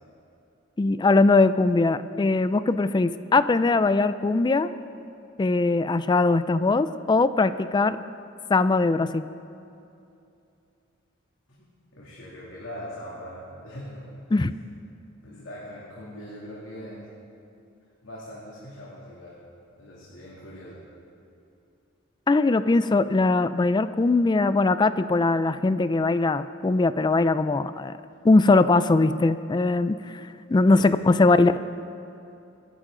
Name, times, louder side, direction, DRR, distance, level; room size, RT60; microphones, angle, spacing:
voice 1, 0.8-4.7 5.4-8.0 8.5-9.3 14.3-14.5 22.3-27.9 28.2-30.0 30.5-31.6, left 3 dB, 20° left, 13 dB, 0.3 m, -21 dB
voice 2, 11.5-14.1 15.2-17.1 18.0-19.4 19.8-20.8 30.8-31.3, equal, 70° left, -6 dB, 2.7 m, -41 dB
25.5 x 11.0 x 3.8 m, 2.7 s
head